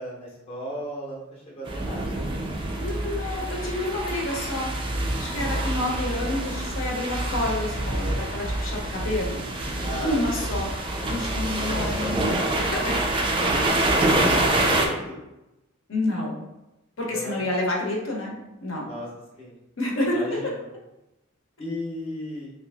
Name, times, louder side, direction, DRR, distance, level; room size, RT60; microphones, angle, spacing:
voice 1, 0.0-2.2 5.5-5.8 9.8-10.6 11.6-12.1 14.0-15.2 17.1-17.4 18.9-19.1 19.4-19.6 20.1-20.7 21.6-22.5, equal, 30° left, -4 dB, 0.7 m, -35 dB
sound 1, 1.7-14.9, right 1 dB, 25° right, 0.3 m, -26 dB
voice 2, 2.8-4.7 5.2-9.4 10.0-10.8 11.0-12.3 12.6-13.8 15.9-16.4 17.0-18.9 19.8-20.4, left 1 dB, 65° left, -2 dB, 0.7 m, -29 dB
2.8 x 2.4 x 3.4 m, 0.94 s
head